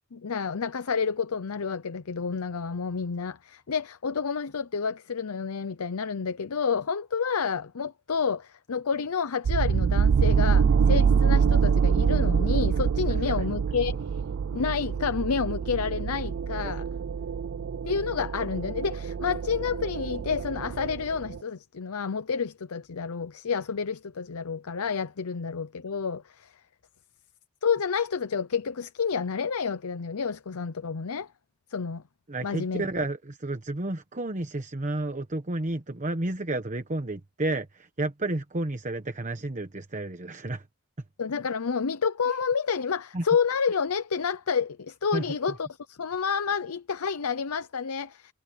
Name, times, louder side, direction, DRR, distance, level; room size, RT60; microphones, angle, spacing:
voice 1, 0.1-14.2 14.5-16.9 17.8-26.5 27.6-31.3 31.7-32.0 32.4-33.1 41.2-48.3, left 6 dB, 80° left, 0.7 m, -29 dB
sound 1, 9.5-21.4, right 6 dB, 55° right, 0.4 m, -25 dB
voice 2, 32.3-40.6 43.1-43.2 45.1-45.2, right 2 dB, 35° right, 1.1 m, -31 dB
head